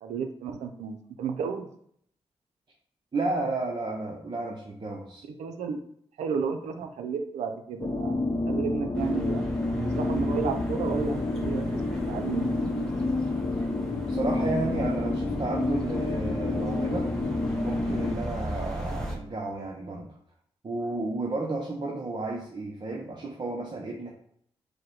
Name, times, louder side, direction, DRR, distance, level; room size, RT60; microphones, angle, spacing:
voice 1, 0.0-1.7 5.4-5.8 6.2-9.4 9.8-11.7 12.1-12.9, right 6 dB, 90° right, 5 dB, 0.5 m, -32 dB
voice 2, 3.1-5.2 14.1-17.1 17.6-20.1 20.6-24.1, right 2 dB, 45° right, -1 dB, 0.8 m, -32 dB
sound 1, 7.8-18.1, left 2 dB, 40° left, 0.7 m, -29 dB
sound 2, 8.9-19.2, equal, 5° left, 1.2 m, -37 dB
4.8 x 2.1 x 4.6 m, 0.67 s
supercardioid pair, 45°, 11 cm